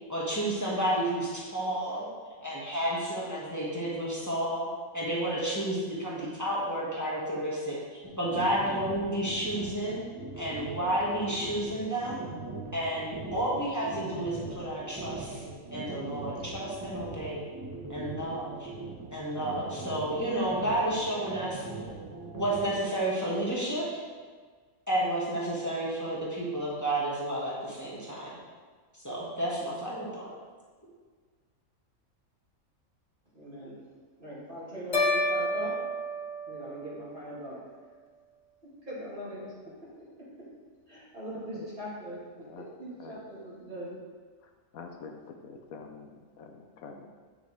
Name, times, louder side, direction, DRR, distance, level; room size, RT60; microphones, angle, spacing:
voice 1, 0.1-2.1 2.4-4.7 4.9-10.0 10.4-12.2 12.7-15.4 15.7-17.4 17.9-18.7 19.1-21.6 22.2-23.9 24.9-28.4 29.0-30.3, right 1 dB, 10° left, -7 dB, 1.8 m, -31 dB
sound 1, 8.0-22.8, right 3 dB, 15° right, 1.3 m, -40 dB
voice 2, 33.3-33.7 34.2-35.7 36.5-37.6 38.9-39.4 40.9-42.2 42.8-44.0, equal, 35° right, -9 dB, 3.0 m, -40 dB
sound 2, 34.9-37.2, left 1 dB, 55° left, 1.6 m, -30 dB
voice 3, 44.7-47.1, left 5 dB, 80° left, 4 dB, 1.2 m, -46 dB
9.3 x 7.2 x 3.5 m, 1.5 s
omnidirectional pair, 1.5 m